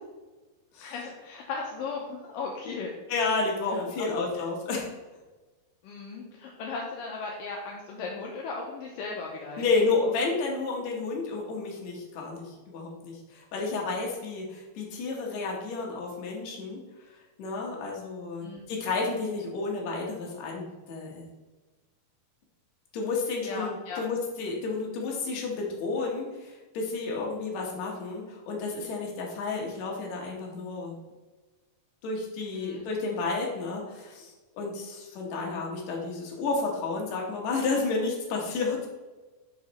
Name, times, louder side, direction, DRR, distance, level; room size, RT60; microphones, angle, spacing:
voice 1, 0.8-2.9 3.7-4.2 5.8-9.7 18.4-18.6 23.4-24.0 32.5-32.8, left 4 dB, 80° left, -2 dB, 2.0 m, -37 dB
voice 2, 3.1-4.9 9.6-16.8 17.1-21.3 22.9-30.9 32.0-38.9, left 3 dB, 60° left, -1 dB, 2.0 m, -31 dB
5.9 x 4.9 x 4.1 m, 1.2 s
omnidirectional pair, 4.6 m